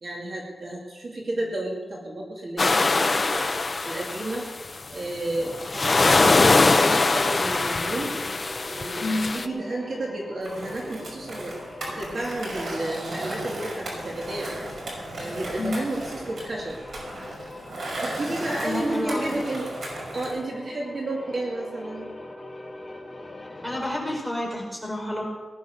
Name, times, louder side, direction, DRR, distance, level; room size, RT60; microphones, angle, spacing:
voice 1, 0.0-3.5 3.8-4.5 4.9-8.1 8.7-11.5 11.9-14.5 15.2-16.8 18.0-19.7 20.1-22.1, right 1 dB, 40° right, -2 dB, 2.4 m, -31 dB
sound 1, 2.6-4.8 5.3-9.5, left 3 dB, 35° left, 0.8 m, -22 dB
sound 2, 6.9-24.4, left 1 dB, 15° left, 3.1 m, -41 dB
Skateboard, 10.4-20.4, right 1 dB, 70° right, 5.6 m, -36 dB
voice 2, 18.6-19.3 23.6-25.2, left 1 dB, 5° right, -1 dB, 4.5 m, -29 dB
19.0 x 10.5 x 6.6 m, 1.3 s
wide cardioid pair, 165°, 0 cm